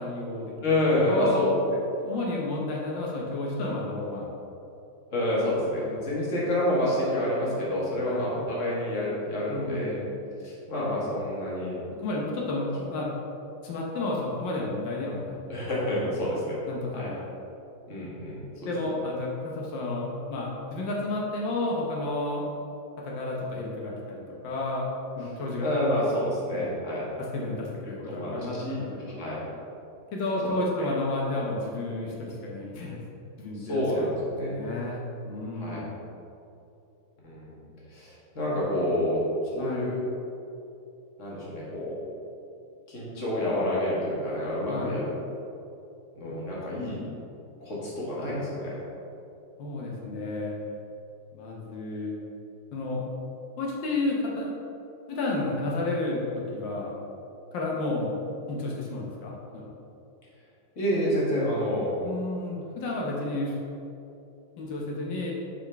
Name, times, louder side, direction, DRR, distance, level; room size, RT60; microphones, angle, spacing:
voice 1, 0.0-0.8 1.1-1.6 2.0-4.3 5.8-6.0 8.1-8.3 9.5-10.2 12.0-13.1 13.6-15.4 16.7-17.3 18.7-22.4 23.0-24.9 25.2-26.7 27.2-29.2 30.1-33.0 33.4-34.1 34.5-36.0 39.6-39.9 44.7-45.0 49.6-50.6 51.3-52.1 52.7-53.0 53.6-54.5 55.1-56.9 57.5-58.1 58.5-59.7 62.0-63.5 64.6-65.3, left 2 dB, 85° left, -3 dB, 1.6 m, -31 dB
voice 2, 0.6-1.5 5.1-10.0 10.4-11.8 15.5-16.6 16.9-17.1 17.9-18.7 25.6-27.1 28.1-28.8 29.2-29.4 30.8-30.9 33.6-34.6 35.6-35.8 37.2-37.6 37.9-40.0 41.2-42.0 42.9-45.2 46.2-47.0 47.6-48.7 60.8-61.9, left 1 dB, 45° left, -6 dB, 1.8 m, -28 dB
7.1 x 5.0 x 3.4 m, 2.7 s
omnidirectional pair, 2.0 m